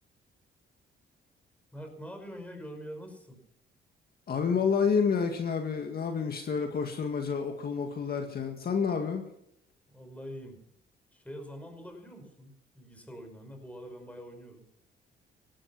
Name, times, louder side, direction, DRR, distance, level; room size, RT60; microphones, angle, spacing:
voice 1, 1.7-3.4 9.9-10.6 11.1-14.6, equal, 5° left, 5 dB, 5.3 m, -44 dB
voice 2, 4.3-9.3, left 6 dB, 50° left, 4 dB, 2.0 m, -29 dB
17.0 x 12.5 x 5.9 m, 0.74 s
cardioid pair, 90°, 20 cm